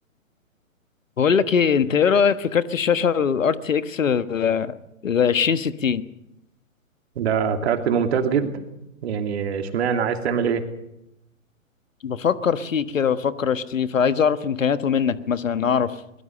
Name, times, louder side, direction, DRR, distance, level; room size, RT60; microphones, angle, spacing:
voice 1, 1.2-4.7 5.0-6.0 12.0-15.9, left 7 dB, 65° left, 13 dB, 1.4 m, -21 dB
voice 2, 7.2-8.6 9.0-10.6, right 7 dB, 50° right, 5 dB, 2.8 m, -23 dB
23.0 x 21.0 x 6.8 m, 0.84 s
figure-of-eight pair, 125°, 42 cm